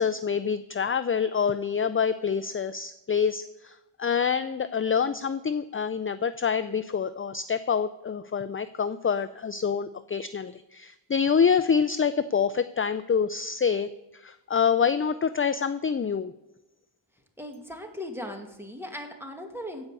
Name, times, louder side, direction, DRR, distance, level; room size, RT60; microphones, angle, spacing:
voice 1, 0.0-16.3, left 6 dB, 25° left, 13 dB, 0.4 m, -26 dB
voice 2, 17.4-19.9, left 1 dB, 5° right, 3 dB, 2.2 m, -38 dB
16.0 x 5.4 x 8.3 m, 0.92 s
cardioid pair, 65°, 49 cm